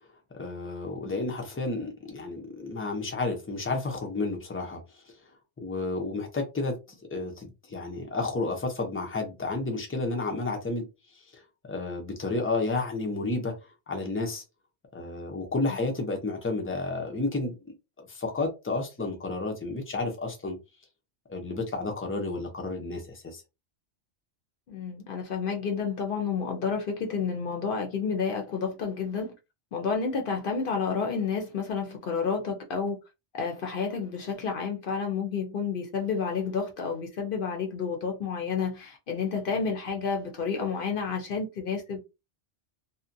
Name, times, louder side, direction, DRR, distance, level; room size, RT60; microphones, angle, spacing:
voice 1, 0.3-4.8 5.6-6.8 7.1-10.9 11.7-13.5 13.9-14.4 14.9-17.5 18.0-20.6 21.3-23.4, left 3 dB, 20° left, 0.3 m, -31 dB
voice 2, 24.7-29.3 29.7-33.0 33.3-42.0, left 5 dB, 55° left, 0.7 m, -30 dB
2.6 x 2.1 x 2.5 m
omnidirectional pair, 1.2 m